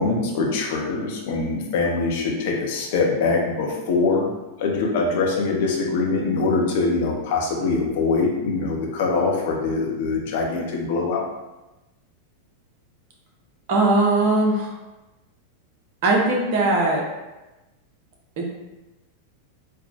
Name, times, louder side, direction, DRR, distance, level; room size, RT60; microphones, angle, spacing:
voice 1, 0.0-4.3 4.6-11.2, left 3 dB, 50° left, 0 dB, 0.6 m, -23 dB
voice 2, 13.7-14.7 16.0-17.0 18.4-18.5, right 2 dB, 50° right, -2 dB, 0.8 m, -19 dB
4.3 x 2.1 x 2.7 m, 1.1 s
figure-of-eight pair, 90°, 0 cm